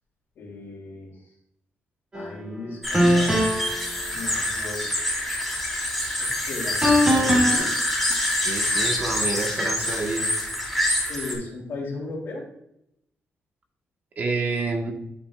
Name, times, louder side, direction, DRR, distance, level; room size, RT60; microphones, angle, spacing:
voice 1, 0.4-1.1 2.1-3.4 4.1-4.9 6.2-7.7 11.1-12.4, left 2 dB, 65° left, -4 dB, 3.1 m, -36 dB
sound 1, 2.1-2.3 2.9-3.7 6.8-7.6, equal, 20° right, 2.6 m, -20 dB
sound 2, 2.8-11.3, left 1 dB, ahead, 3.0 m, -26 dB
voice 2, 8.3-10.3 14.2-14.9, right 3 dB, 45° right, 2 dB, 1.3 m, -28 dB
12.5 x 5.3 x 2.4 m, 0.78 s
cardioid pair, 135°, 4 cm